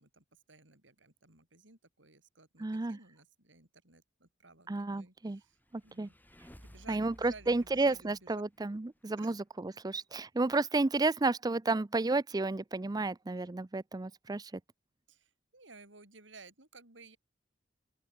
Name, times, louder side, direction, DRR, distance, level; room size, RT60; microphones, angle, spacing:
voice 1, 0.0-5.6 5.8-6.1 6.6-8.4 9.2-9.3 15.1-17.2, right 3 dB, 80° right, 6.5 m, -56 dB
voice 2, 2.6-3.0 4.7-5.4 5.7-6.1 6.9-14.5, right 3 dB, 20° right, 0.5 m, -32 dB
sound 1, 5.4-9.0, equal, 10° left, 3.7 m, -57 dB
open air
head